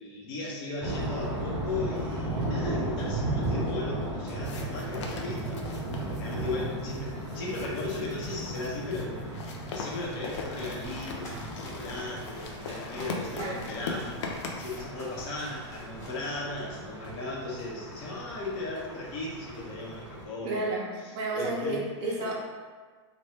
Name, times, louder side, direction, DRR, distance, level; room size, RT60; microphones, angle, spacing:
voice 1, 0.0-5.6 6.0-9.3 9.7-14.2 14.6-20.7 21.3-22.3, left 2 dB, 45° left, -4 dB, 0.8 m, -36 dB
sound 1, 0.8-20.2, right 1 dB, 10° right, 0.9 m, -36 dB
sound 2, 4.4-14.8, left 4 dB, 75° left, 0.5 m, -41 dB
sound 3, 10.1-16.9, left 1 dB, 20° left, 0.5 m, -48 dB
voice 2, 13.4-13.7 20.4-22.3, right 2 dB, 35° right, -4 dB, 0.6 m, -31 dB
2.7 x 2.2 x 3.3 m, 1.5 s
supercardioid pair, 145°, 15 cm